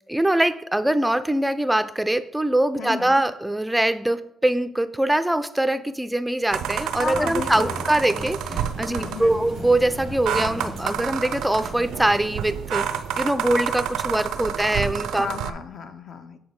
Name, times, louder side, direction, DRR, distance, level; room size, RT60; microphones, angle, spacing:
voice 1, 0.1-12.9 13.2-15.3, right 1 dB, 5° right, 12 dB, 0.3 m, -23 dB
voice 2, 2.8-3.2 7.0-7.8 8.9-9.5 14.8-16.4, left 5 dB, 60° left, 9 dB, 0.6 m, -34 dB
sound 1, 6.5-15.5, right 9 dB, 85° right, 0.4 m, -29 dB
sound 2, 7.1-12.2, left 1 dB, 30° left, 1.1 m, -38 dB
7.9 x 4.4 x 3.6 m, 0.73 s
cardioid pair, 90°, 0 cm